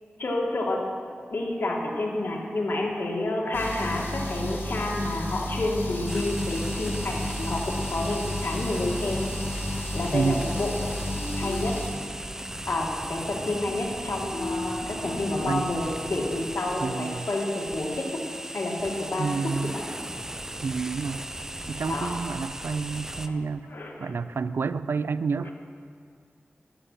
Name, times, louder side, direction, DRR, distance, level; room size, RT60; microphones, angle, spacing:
voice 1, 0.2-0.8 1.3-9.2 9.9-10.7 11.4-11.7 12.7-18.2 18.5-19.3 21.9-22.1 23.3-23.4 23.7-24.1 25.4-25.5, left 2 dB, 65° left, -1 dB, 2.2 m, -29 dB
sound 1, 3.5-11.9, left 1 dB, 80° left, 2.5 m, -32 dB
sound 2, 6.1-23.3, right 1 dB, 10° right, 0.6 m, -37 dB
voice 2, 10.1-10.5 15.5-15.7 16.8-17.3 19.2-19.8 20.6-21.2 21.7-23.7 24.0-25.5, right 5 dB, 70° right, 15 dB, 0.4 m, -29 dB
sound 3, 11.2-12.4 13.7-15.9, left 2 dB, 40° left, 1.2 m, -37 dB
13.0 x 9.6 x 5.7 m, 2.2 s
wide cardioid pair, 70°, 4 cm